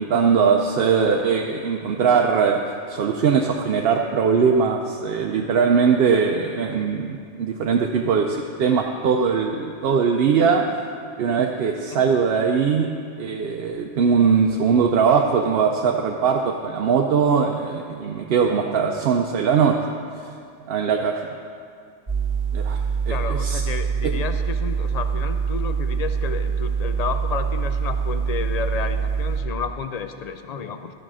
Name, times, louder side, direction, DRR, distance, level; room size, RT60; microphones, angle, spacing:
voice 1, 0.0-2.6 2.9-10.8 11.2-12.9 13.2-19.8 20.2-20.3 20.7-21.2 22.5-22.8 23.1-23.6, right 6 dB, 65° right, 2 dB, 0.8 m, -20 dB
sound 1, 22.1-29.4, right 6 dB, 35° right, 1.9 m, -24 dB
voice 2, 23.1-30.9, left 6 dB, 50° left, 8 dB, 0.5 m, -31 dB
12.5 x 5.0 x 6.2 m, 2.4 s
omnidirectional pair, 1.1 m